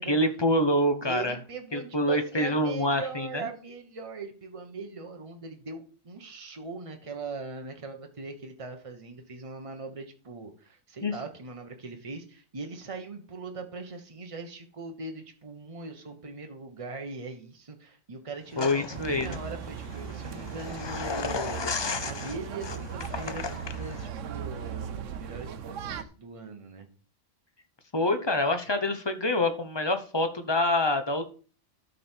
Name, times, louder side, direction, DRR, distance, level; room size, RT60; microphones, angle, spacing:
voice 1, 0.0-1.3 1.7-3.5 11.0-11.1 18.6-19.4 27.9-31.2, left 1 dB, 25° left, 7 dB, 0.9 m, -26 dB
voice 2, 1.0-26.9, right 3 dB, 30° right, 4 dB, 1.2 m, -40 dB
sound 1, 18.6-24.1, left 5 dB, 40° left, 0.4 m, -36 dB
sound 2, 18.9-26.0, right 7 dB, 85° right, 1.1 m, -38 dB
12.5 x 5.4 x 4.5 m, 0.39 s
omnidirectional pair, 1.2 m